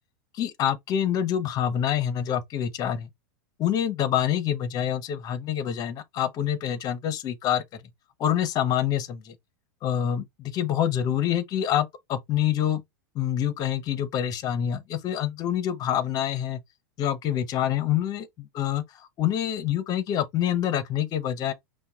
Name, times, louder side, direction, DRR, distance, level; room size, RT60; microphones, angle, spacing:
voice 1, 0.3-3.1 3.6-7.6 8.2-9.3 9.8-12.8 13.1-16.6 17.0-18.8 19.2-21.5, left 10 dB, 35° left, 0.9 m, -26 dB
5.6 x 2.3 x 3.4 m
hypercardioid pair, 120°, 10 cm